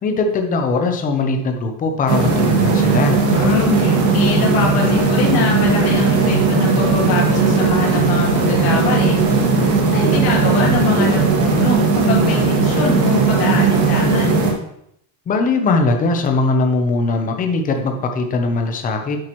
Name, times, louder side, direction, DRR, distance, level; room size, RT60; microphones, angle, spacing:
voice 1, 0.0-3.2 15.3-19.3, left 3 dB, 20° left, 4 dB, 0.7 m, -20 dB
sound 1, 2.1-14.5, right 4 dB, 65° right, 2.1 m, -16 dB
voice 2, 3.2-9.2 9.9-14.4, left 5 dB, 50° left, -4 dB, 2.7 m, -23 dB
8.1 x 7.7 x 3.0 m, 0.75 s
cardioid pair, 175°, 47 cm